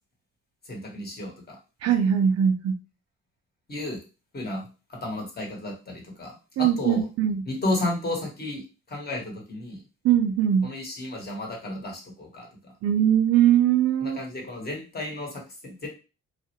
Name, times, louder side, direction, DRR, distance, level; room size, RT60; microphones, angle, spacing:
voice 1, 0.7-1.6 3.7-4.0 4.3-4.6 4.9-7.1 7.5-9.8 10.6-12.7 14.0-15.9, left 1 dB, 30° left, 0 dB, 1.0 m, -33 dB
voice 2, 1.8-2.8 6.6-7.4 10.0-10.7 12.8-14.2, right 9 dB, 55° right, 6 dB, 0.4 m, -21 dB
2.3 x 2.1 x 2.8 m, 0.32 s
cardioid pair, 90°, 30 cm